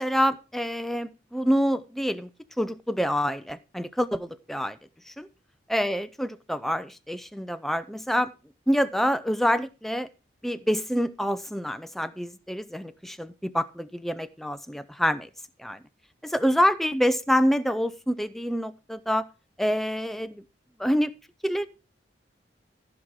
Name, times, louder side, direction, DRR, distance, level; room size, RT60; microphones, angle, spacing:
voice 1, 0.0-2.3 2.6-4.8 5.1-5.3 5.7-8.3 8.7-10.1 10.4-15.3 15.6-15.8 16.2-19.3 19.6-20.4 20.8-21.1 21.4-21.7, equal, ahead, 11 dB, 0.5 m, -26 dB
15.0 x 6.0 x 4.8 m, 0.31 s
head